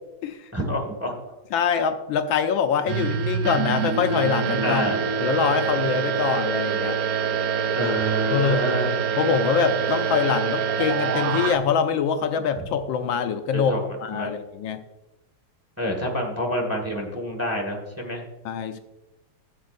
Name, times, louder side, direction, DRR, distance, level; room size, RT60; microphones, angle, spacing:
voice 1, 0.5-1.2 4.6-5.0 7.7-8.9 12.4-12.5 13.5-13.8 14.1-14.3 15.8-18.2, equal, 10° right, 0 dB, 1.5 m, -27 dB
voice 2, 1.5-4.8 5.2-7.0 7.8-7.9 8.3-8.7 9.2-13.7 14.0-14.8 18.4-18.8, left 7 dB, 75° left, 7 dB, 1.4 m, -24 dB
sound 1, 2.9-11.6, right 7 dB, 70° right, 0.9 m, -25 dB
16.0 x 7.5 x 2.6 m, 1.0 s
omnidirectional pair, 2.2 m